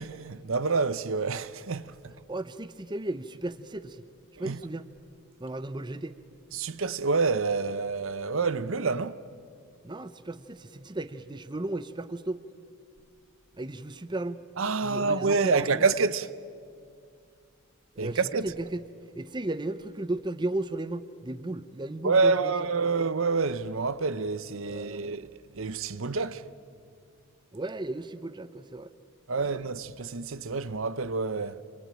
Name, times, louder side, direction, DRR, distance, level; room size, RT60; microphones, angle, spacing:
voice 1, 0.0-2.1 4.4-4.6 6.5-9.2 14.6-16.3 18.0-18.5 22.0-25.3 25.5-26.5 29.3-31.6, right 4 dB, 60° right, 0.8 m, -27 dB
voice 2, 2.3-4.0 4.4-4.9 5.4-6.1 9.8-12.4 13.6-14.5 14.8-15.9 18.0-18.8 19.1-22.5 22.8-22.9 24.7-25.2 27.5-28.9 29.4-29.5, right 2 dB, 20° right, 0.7 m, -35 dB
26.0 x 23.0 x 8.9 m
head